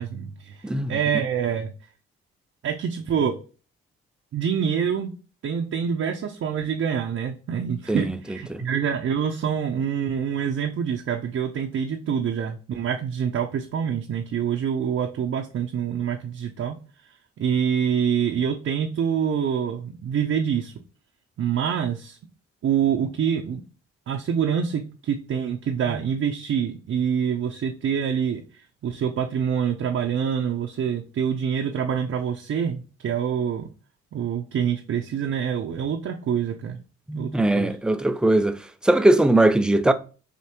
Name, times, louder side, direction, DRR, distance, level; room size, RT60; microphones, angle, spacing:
voice 1, 0.0-1.7 2.6-3.4 4.3-5.1 5.4-16.8 17.4-20.7 21.4-22.2 22.6-23.6 24.1-28.4 28.8-33.7 34.1-36.8 37.1-37.8, right 8 dB, 45° right, 0.6 m, -26 dB
voice 2, 37.1-38.6 38.8-39.9, right 1 dB, 5° right, 0.3 m, -20 dB
4.9 x 2.5 x 2.9 m
supercardioid pair, 70°, 31 cm